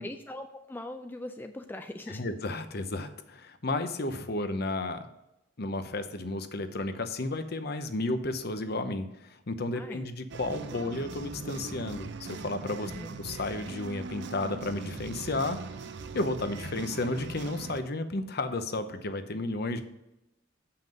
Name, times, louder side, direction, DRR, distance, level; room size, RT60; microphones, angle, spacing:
voice 1, 0.0-2.2 9.7-10.1 12.8-13.2, left 1 dB, 10° left, 6 dB, 0.3 m, -40 dB
voice 2, 2.1-5.1 5.6-12.9 13.2-15.9 16.1-19.8, left 2 dB, 55° left, 9 dB, 0.8 m, -33 dB
sound 1, 10.3-17.8, right 4 dB, 60° right, 0.5 m, -41 dB
7.5 x 5.8 x 5.2 m, 0.89 s
head